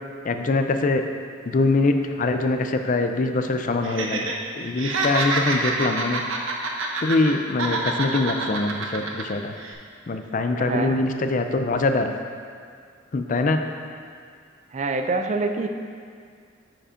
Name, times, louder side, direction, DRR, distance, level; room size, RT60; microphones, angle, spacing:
voice 1, 0.2-1.0 1.5-4.3 4.5-6.2 7.0-9.5 10.1-12.1 13.1-13.6, left 3 dB, 40° left, 6 dB, 0.4 m, -23 dB
Laughter, 3.8-4.3 4.6-7.3 7.6-9.2 9.6-9.7, right 3 dB, 90° right, 0.8 m, -26 dB
voice 2, 10.6-11.0 14.7-15.7, right 3 dB, 35° right, 6 dB, 0.4 m, -26 dB
7.6 x 5.0 x 4.9 m, 2.2 s
head